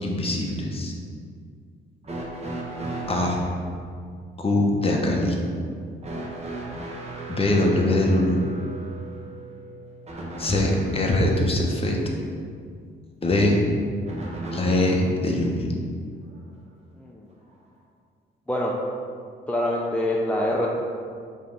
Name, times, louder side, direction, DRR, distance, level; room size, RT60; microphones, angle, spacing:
voice 1, 0.0-0.9 3.1-3.4 4.4-5.4 7.3-8.4 10.4-12.0 13.2-13.6 14.5-15.6, left 1 dB, 30° left, 0 dB, 1.1 m, -22 dB
sound 1, 2.0-3.5 6.0-11.1 14.1-15.1 16.3-16.4 17.5-17.6, right 1 dB, 30° right, 1.2 m, -36 dB
voice 2, 19.5-20.7, left 1 dB, 5° left, -3 dB, 0.6 m, -25 dB
5.4 x 3.2 x 5.3 m, 2.2 s
cardioid pair, 90°, 20 cm